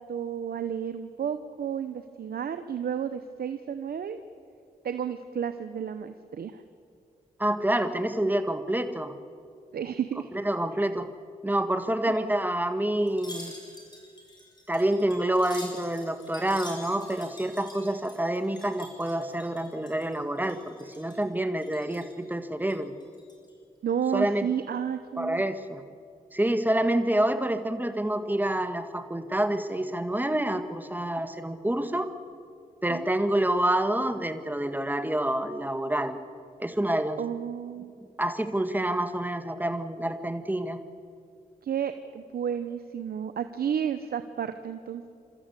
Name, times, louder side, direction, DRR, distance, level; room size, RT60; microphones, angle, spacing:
voice 1, 0.0-4.2 4.8-6.6 9.7-10.3 23.8-25.4 32.9-33.1 37.2-37.9 41.6-45.1, right 8 dB, 75° right, 10 dB, 0.9 m, -32 dB
voice 2, 7.4-9.1 10.3-11.1 11.4-13.5 14.7-22.9 24.1-24.5 25.2-25.8 26.3-32.1 32.8-36.2 36.6-37.2 38.2-40.8, right 1 dB, 10° right, 9 dB, 1.7 m, -27 dB
Wind chime, 13.1-20.2 20.4-21.2 21.6-22.1 22.6-23.5 23.9-24.1, left 1 dB, 25° left, 6.4 m, -47 dB
29.0 x 13.5 x 8.3 m, 2.4 s
cardioid pair, 50°, 16 cm